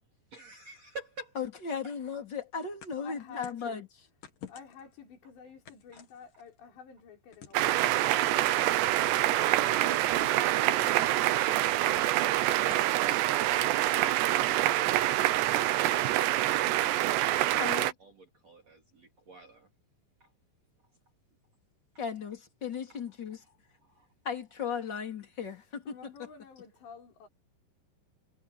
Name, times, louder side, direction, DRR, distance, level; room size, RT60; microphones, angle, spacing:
voice 1, 0.3-1.4 5.9-6.0 17.1-19.7 20.2-20.3 21.9-22.0 22.9-23.0 23.4-24.1, right 2 dB, 40° right, 3.8 m, -50 dB
voice 2, 1.4-3.8 14.6-14.7 17.6-17.9 22.0-23.4 24.2-25.8, left 6 dB, 25° left, 3.6 m, -36 dB
sound 1, 2.8-3.7 4.2-4.9 5.7-6.6 7.3-7.8 8.7-9.3 9.9-10.4 10.8-11.1 11.9-12.3 12.7-13.2 13.6-15.5, left 8 dB, 55° left, 3.4 m, -51 dB
voice 3, 3.0-3.9 4.5-13.1 25.4-27.3, left 6 dB, 75° left, 7.2 m, -51 dB
sound 2, 7.5-17.9, right 15 dB, 75° right, 3.0 m, -26 dB
omnidirectional pair, 5.1 m